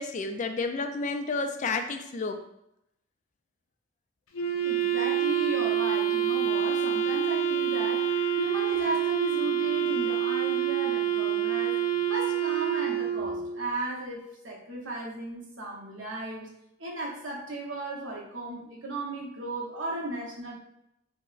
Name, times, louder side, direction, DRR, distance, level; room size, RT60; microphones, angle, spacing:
voice 1, 0.0-2.4, left 3 dB, 35° left, 6 dB, 0.3 m, -31 dB
Wind instrument woodwind instrument, 4.3-13.6, right 9 dB, 85° left, 0.6 m, -27 dB
voice 2, 4.6-11.8 12.1-16.5 16.8-20.5, right 1 dB, 65° right, -2 dB, 0.8 m, -36 dB
4.5 x 2.0 x 2.5 m, 0.80 s
head